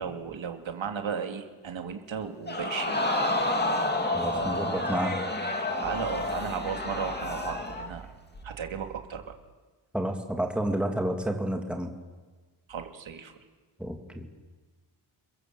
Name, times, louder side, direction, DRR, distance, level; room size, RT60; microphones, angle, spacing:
voice 1, 0.0-3.1 4.3-5.1 5.8-8.1 8.4-9.3 12.7-13.3, right 6 dB, 70° right, 5 dB, 2.7 m, -35 dB
Crowd, 2.5-7.9 8.3-8.4, left 2 dB, 20° left, 2.8 m, -29 dB
voice 2, 4.1-5.1 9.9-11.9 13.8-14.3, right 1 dB, ahead, 3 dB, 2.6 m, -30 dB
28.0 x 22.5 x 7.8 m, 1.3 s
wide cardioid pair, 130°, 48 cm